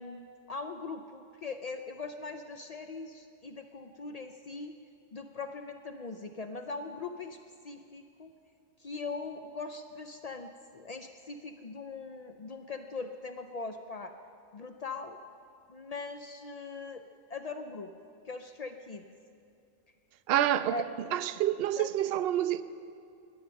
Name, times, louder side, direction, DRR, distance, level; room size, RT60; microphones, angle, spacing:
voice 1, 0.0-4.8 5.1-7.4 7.6-8.3 8.8-14.1 14.5-15.2 15.7-17.9 18.2-19.0 20.7-20.9 21.8-21.9, left 4 dB, 90° left, 0.3 m, -41 dB
voice 2, 20.3-20.8 21.1-22.6, right 12 dB, 60° right, 0.6 m, -28 dB
20.5 x 8.7 x 6.4 m
omnidirectional pair, 1.4 m